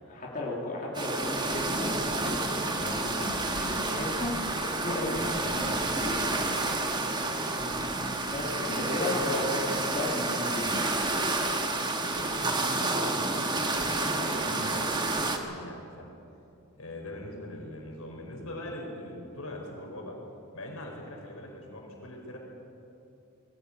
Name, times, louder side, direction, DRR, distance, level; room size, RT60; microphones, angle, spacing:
voice 1, 0.1-6.6 7.5-10.9 14.5-14.7, left 1 dB, 40° left, -4 dB, 3.3 m, -35 dB
sound 1, 0.9-15.4, right 2 dB, 20° right, 1.5 m, -30 dB
voice 2, 12.0-16.1 16.7-20.2 20.5-22.4, left 1 dB, 80° left, 0 dB, 4.9 m, -42 dB
21.0 x 15.5 x 8.8 m, 2.7 s
head